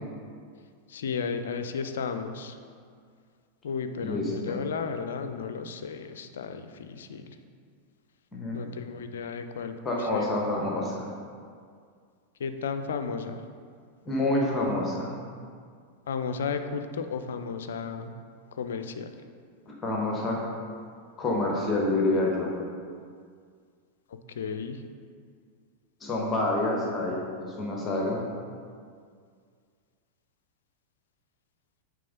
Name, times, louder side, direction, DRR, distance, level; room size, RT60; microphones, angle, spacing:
voice 1, 0.9-2.5 3.6-7.3 8.5-9.7 10.1-10.3 12.4-13.4 16.1-18.1 18.6-19.1 24.4-24.8, left 5 dB, 60° left, 8 dB, 0.5 m, -33 dB
voice 2, 4.0-4.6 8.3-8.7 9.8-11.1 14.0-15.1 19.7-20.4 21.2-22.5 26.0-28.2, left 2 dB, 20° left, -2 dB, 1.2 m, -28 dB
8.3 x 3.7 x 5.2 m, 2.1 s
figure-of-eight pair, 90°, 0 cm